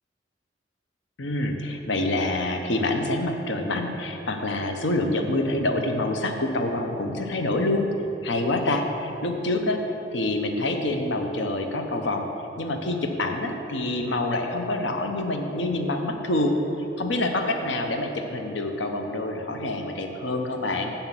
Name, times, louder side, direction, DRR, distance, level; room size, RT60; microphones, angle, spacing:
voice 1, 1.2-7.9 8.2-9.8 10.1-12.3 12.6-16.6 17.0-20.9, left 2 dB, 70° left, 4 dB, 0.8 m, -26 dB
6.8 x 5.7 x 7.3 m, 2.9 s
head